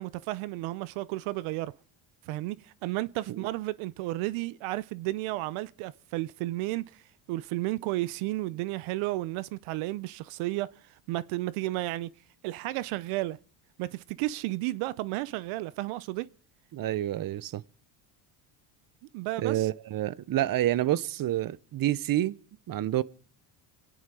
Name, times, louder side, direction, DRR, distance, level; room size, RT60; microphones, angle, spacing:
voice 1, 0.0-1.7 2.3-7.0 7.3-10.7 11.1-12.1 12.4-13.4 13.8-16.3 19.1-19.7, right 18 dB, 85° right, 0.7 m, -32 dB
voice 2, 16.7-17.6 19.4-22.4 22.7-23.0, right 13 dB, 45° right, 0.8 m, -28 dB
27.5 x 10.5 x 4.7 m
supercardioid pair, 95°, 48 cm